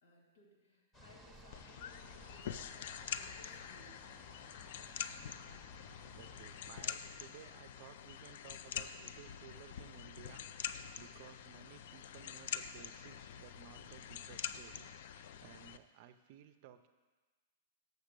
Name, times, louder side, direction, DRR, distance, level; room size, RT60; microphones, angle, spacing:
voice 1, 0.0-4.1, left 2 dB, 80° left, 1 dB, 2.1 m, -63 dB
sound 1, 0.9-6.8, equal, 10° left, 0.9 m, -58 dB
sound 2, 1.5-15.8, left 9 dB, 55° left, 0.3 m, -45 dB
voice 2, 6.1-16.9, right 11 dB, 45° right, 10 dB, 0.4 m, -57 dB
6.7 x 6.0 x 6.7 m, 1.3 s
supercardioid pair, 165°, 0 cm